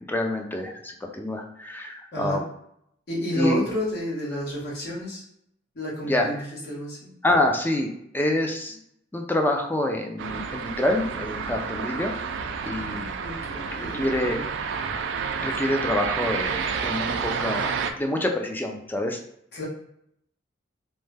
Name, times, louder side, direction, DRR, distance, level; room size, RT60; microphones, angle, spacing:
voice 1, 0.1-2.4 3.3-3.6 6.0-6.3 7.2-8.8 9.1-13.1 13.8-14.4 15.4-19.2, left 1 dB, 10° left, 3 dB, 0.3 m, -27 dB
voice 2, 3.1-5.2 5.7-7.1 12.8-14.4 19.5-19.6, equal, 60° left, -6 dB, 1.2 m, -31 dB
sound 1, 10.2-17.9, right 5 dB, 70° right, 0.3 m, -30 dB
3.2 x 2.1 x 3.3 m, 0.74 s
head